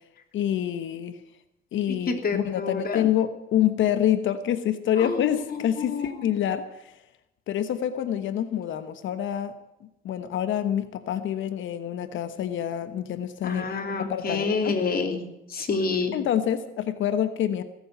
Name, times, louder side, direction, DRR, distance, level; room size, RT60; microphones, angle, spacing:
voice 1, 0.3-1.2 1.7-6.9 7.5-9.5 9.8-14.8 16.1-17.6, left 10 dB, 75° left, 10 dB, 1.2 m, -27 dB
voice 2, 2.1-3.0 5.0-6.1 13.4-15.2 15.5-16.2, left 4 dB, 50° left, 5 dB, 3.0 m, -28 dB
18.0 x 8.0 x 9.3 m, 0.87 s
cardioid pair, 90°, 20 cm